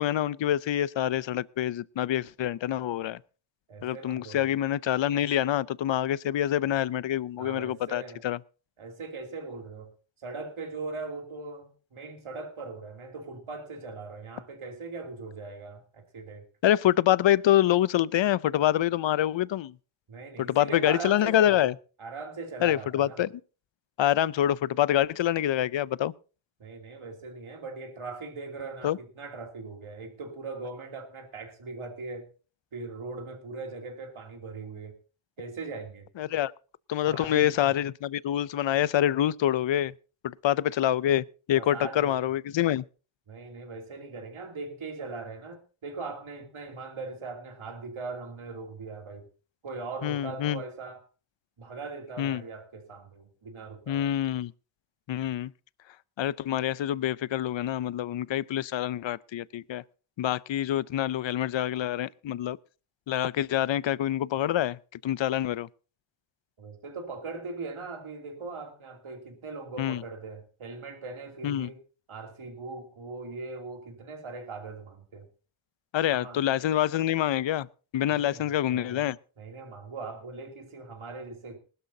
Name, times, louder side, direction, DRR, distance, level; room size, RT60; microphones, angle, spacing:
voice 1, 0.0-3.2 3.8-8.4 16.6-19.7 20.4-21.7 22.6-23.3 24.0-26.1 28.8-29.0 36.2-36.5 36.9-39.9 40.2-42.8 50.0-50.6 52.2-52.4 53.9-54.5 55.1-55.5 56.2-59.8 60.2-62.6 63.1-64.8 65.0-65.7 69.8-70.0 71.4-71.7 75.9-77.7 77.9-79.2, left 12 dB, 65° left, 0.6 m, -26 dB
voice 2, 3.7-4.5 7.4-8.2 8.8-9.9 10.2-16.4 20.1-21.7 22.0-23.2 26.6-32.3 32.7-34.9 35.4-36.1 37.1-37.7 41.5-42.1 43.3-49.3 49.6-51.0 51.6-54.0 66.6-71.8 72.1-75.3 76.1-76.4 78.1-78.4 78.7-79.1 79.4-81.6, right 3 dB, 75° right, 3.0 m, -40 dB
20.0 x 12.5 x 2.7 m
cardioid pair, 65°, 49 cm